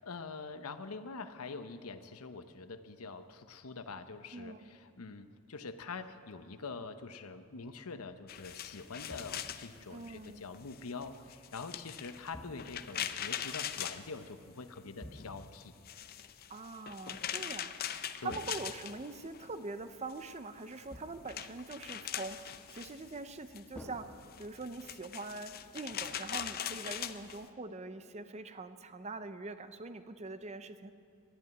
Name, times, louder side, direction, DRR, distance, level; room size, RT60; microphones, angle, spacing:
voice 1, 0.0-15.7 18.2-18.4, left 4 dB, 85° left, 10 dB, 0.8 m, -45 dB
voice 2, 4.3-4.7 9.9-10.4 16.5-17.7 18.2-30.9, right 3 dB, 30° right, 11 dB, 0.6 m, -43 dB
sound 1, 8.3-14.8 15.1-19.5 19.8-27.4, left 9 dB, 45° left, 0.6 m, -42 dB
sound 2, 9.1-9.7 12.3-13.0 15.0-15.7 18.3-19.2 20.9-21.5 23.7-24.8, left 1 dB, 5° left, 1.2 m, -51 dB
12.0 x 10.5 x 9.5 m, 2.6 s
head